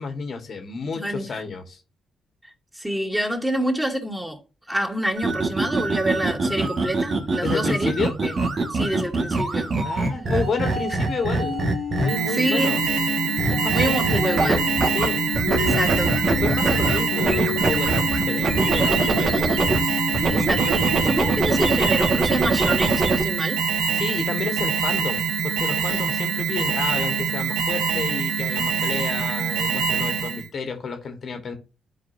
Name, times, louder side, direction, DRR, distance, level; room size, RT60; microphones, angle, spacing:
voice 1, 0.0-1.8 7.4-8.1 9.8-11.5 12.0-12.8 13.5-15.2 16.2-18.0 18.3-18.9 19.2-19.5 23.9-31.6, left 4 dB, 55° left, 1.6 m, -30 dB
voice 2, 0.9-1.4 2.7-4.4 4.7-7.9 8.2-8.3 8.7-9.7 12.3-12.8 13.7-14.6 15.6-16.2 20.3-23.6, equal, 10° right, 2.8 m, -27 dB
sound 1, 5.2-12.4 13.4-15.1 15.3-19.8 20.1-23.2, right 2 dB, 50° right, 1.7 m, -24 dB
sound 2, 11.4-21.8, left 6 dB, 90° left, 1.8 m, -30 dB
Alarm, 12.1-30.5, right 6 dB, 90° right, 1.4 m, -25 dB
13.0 x 5.0 x 2.7 m
supercardioid pair, 55°, 0 cm